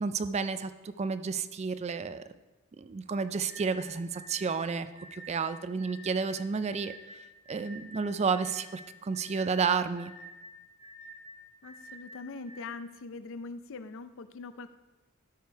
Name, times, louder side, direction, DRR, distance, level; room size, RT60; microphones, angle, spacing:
voice 1, 0.0-2.2 2.8-6.9 7.5-10.1, right 5 dB, 30° right, 12 dB, 0.4 m, -31 dB
sound 1, 3.5-12.6, equal, 20° left, 2.3 m, -49 dB
voice 2, 11.6-14.7, left 3 dB, 65° left, 12 dB, 0.5 m, -42 dB
12.5 x 5.1 x 4.6 m, 1.1 s
head